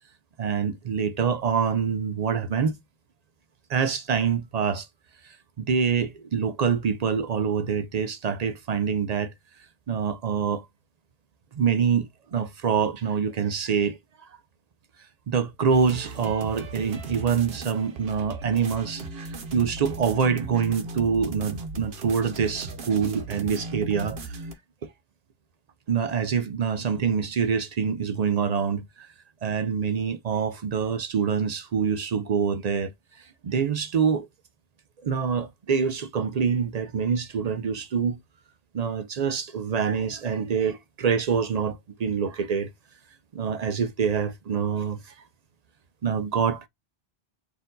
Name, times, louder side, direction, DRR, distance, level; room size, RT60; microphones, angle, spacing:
voice 1, 0.4-2.8 3.7-4.9 5.2-9.3 9.9-10.6 11.5-14.0 15.3-19.0 19.5-24.4 24.8-24.9 25.9-29.1 29.4-32.9 33.4-34.3 35.0-38.2 38.7-42.7 43.3-45.1 46.0-46.7, right 6 dB, 55° right, 0.5 m, -25 dB
sound 1, 15.7-24.5, right 2 dB, 70° right, 1.0 m, -37 dB
4.3 x 2.7 x 3.8 m
omnidirectional pair, 1.1 m